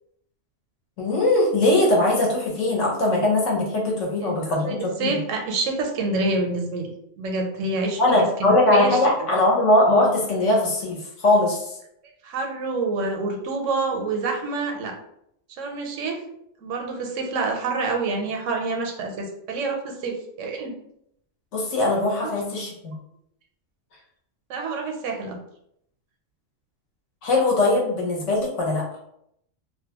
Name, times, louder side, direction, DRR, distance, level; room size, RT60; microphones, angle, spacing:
voice 1, 1.0-5.2 8.0-11.7 21.5-22.9 27.2-28.8, left 2 dB, 80° left, -2 dB, 1.2 m, -21 dB
voice 2, 4.2-8.9 12.2-14.9 15.6-16.2 16.6-20.8 24.5-25.4, right 3 dB, 85° right, 3 dB, 0.9 m, -27 dB
2.6 x 2.1 x 2.8 m, 0.74 s
omnidirectional pair, 1.3 m